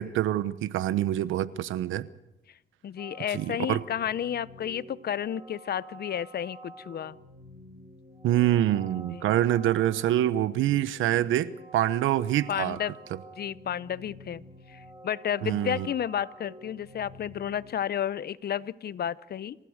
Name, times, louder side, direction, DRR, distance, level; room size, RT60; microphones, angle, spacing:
voice 1, 0.0-2.1 3.3-3.8 8.2-12.8 15.4-15.9, right 12 dB, 85° right, 1.0 m, -26 dB
voice 2, 2.8-7.2 9.1-9.4 12.5-12.9 13.4-19.6, left 9 dB, 55° left, 0.8 m, -32 dB
sound 1, 3.0-17.7, right 1 dB, 20° right, 6.4 m, -49 dB
27.0 x 16.0 x 6.5 m
cardioid pair, 90°, 20 cm